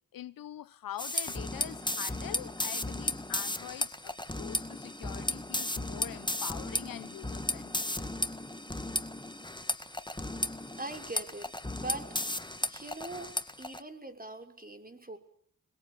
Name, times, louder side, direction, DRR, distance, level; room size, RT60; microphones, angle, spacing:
voice 1, 0.1-8.2, left 11 dB, 85° left, 1.0 m, -44 dB
sound 1, 1.0-13.8, left 1 dB, 15° left, 2.3 m, -35 dB
voice 2, 10.8-12.2 12.6-15.2, right 2 dB, 25° right, 6.1 m, -42 dB
25.0 x 22.0 x 8.8 m
supercardioid pair, 40°, 33 cm